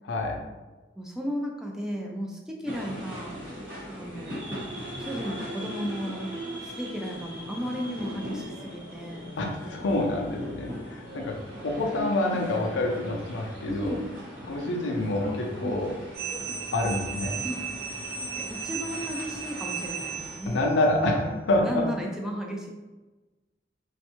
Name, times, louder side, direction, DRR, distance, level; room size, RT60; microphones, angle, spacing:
voice 1, 0.0-0.4 9.4-11.4 11.6-14.0 14.5-15.9 16.7-17.4 20.5-21.9, left 2 dB, 90° left, 1 dB, 0.4 m, -27 dB
voice 2, 1.0-3.4 4.0-4.5 5.0-9.3 12.0-12.1 13.7-14.1 15.6-15.8 17.4-17.7 18.3-20.6 21.6-22.7, equal, 5° right, 0 dB, 0.3 m, -34 dB
sound 1, 2.6-20.4, equal, 80° right, 1.2 m, -40 dB
sound 2, 16.1-20.6, right 5 dB, 60° right, 0.7 m, -35 dB
2.5 x 2.2 x 2.8 m, 1.2 s
head